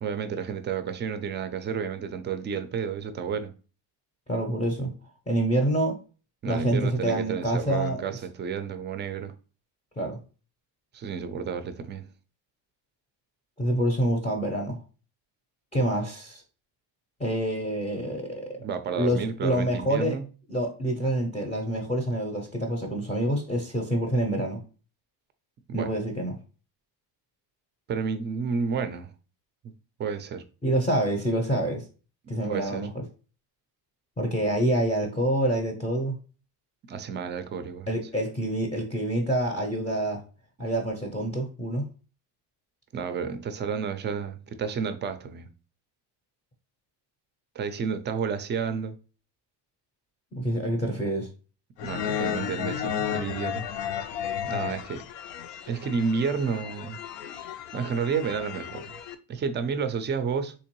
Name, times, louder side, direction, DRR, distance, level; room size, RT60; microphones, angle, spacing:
voice 1, 0.0-3.5 6.4-9.3 10.9-12.1 18.6-20.2 25.7-25.9 27.9-29.1 29.6-29.7 30.0-30.4 32.2-32.9 36.9-37.9 42.9-45.5 47.6-48.9 51.8-53.7 54.4-55.0 55.7-57.0 57.7-58.9 59.3-60.5, right 6 dB, 25° right, 0.4 m, -31 dB
voice 2, 4.3-4.9 5.3-6.0 6.5-8.0 10.0-10.2 13.6-14.8 15.7-16.4 17.2-18.6 18.9-20.2 20.5-24.6 25.7-26.4 30.6-31.8 32.3-33.0 34.2-36.1 37.9-40.2 40.6-41.8 50.3-51.3, right 1 dB, 15° left, 0.6 m, -27 dB
sound 1, 51.8-59.1, left 9 dB, 85° left, 0.6 m, -33 dB
3.6 x 2.9 x 2.9 m
cardioid pair, 130°, 43 cm